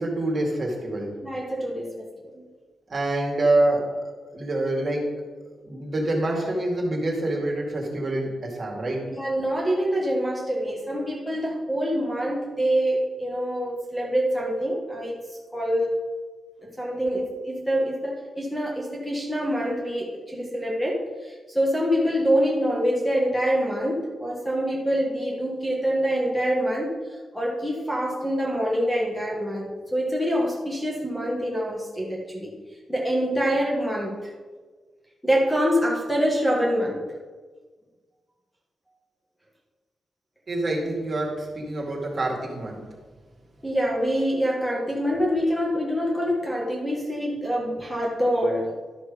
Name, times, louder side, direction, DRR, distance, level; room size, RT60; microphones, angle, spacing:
voice 1, 0.0-1.1 2.9-5.1 5.6-9.1 40.5-42.8, right 2 dB, 40° right, -1 dB, 2.3 m, -26 dB
voice 2, 1.2-2.1 2.3-2.4 9.1-15.2 15.5-15.9 16.8-21.0 21.2-26.9 27.3-32.6 32.9-34.2 35.2-37.0 43.6-48.7, equal, 5° left, -2 dB, 1.6 m, -25 dB
12.0 x 6.1 x 5.0 m, 1.4 s
wide cardioid pair, 135°, 0 cm